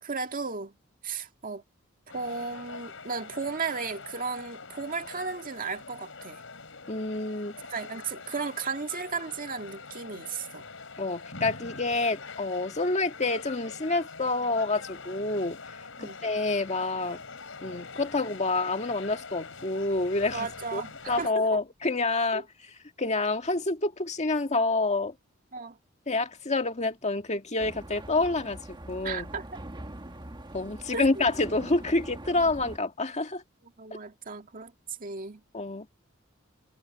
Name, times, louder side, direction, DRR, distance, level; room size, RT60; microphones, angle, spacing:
voice 1, 0.0-0.8 1.0-1.6 2.1-6.4 7.7-10.6 16.0-16.2 20.3-21.6 22.3-22.4 25.5-25.8 29.0-29.6 30.9-31.2 33.8-34.7 35.0-35.4, right 4 dB, 45° right, 1.9 m, -35 dB
sound 1, 2.1-21.3, left 4 dB, 70° left, 7.1 m, -44 dB
voice 2, 6.9-7.6 11.0-15.6 16.0-17.2 17.6-22.4 23.0-25.1 26.1-29.3 30.5-33.4 35.5-35.9, left 3 dB, 35° left, 1.9 m, -28 dB
sound 2, 27.6-32.8, right 1 dB, 25° right, 1.7 m, -43 dB
head